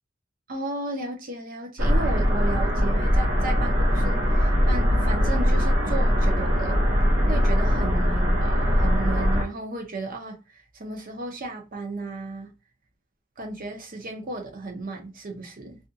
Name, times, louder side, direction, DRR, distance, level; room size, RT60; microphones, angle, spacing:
voice 1, 0.5-6.8 7.3-12.5 13.4-15.8, right 2 dB, 45° right, 0.7 m, -34 dB
sound 1, 1.8-9.4, equal, 75° right, 0.8 m, -21 dB
2.5 x 2.3 x 2.6 m
head